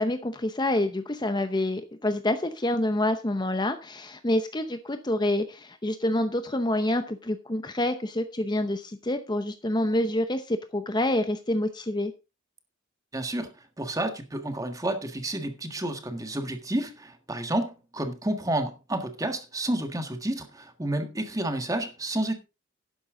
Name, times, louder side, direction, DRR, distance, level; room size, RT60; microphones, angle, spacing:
voice 1, 0.0-12.1, left 1 dB, 20° left, 0.7 m, -27 dB
voice 2, 13.1-22.3, right 1 dB, 15° right, 1.6 m, -30 dB
12.0 x 9.9 x 3.8 m
head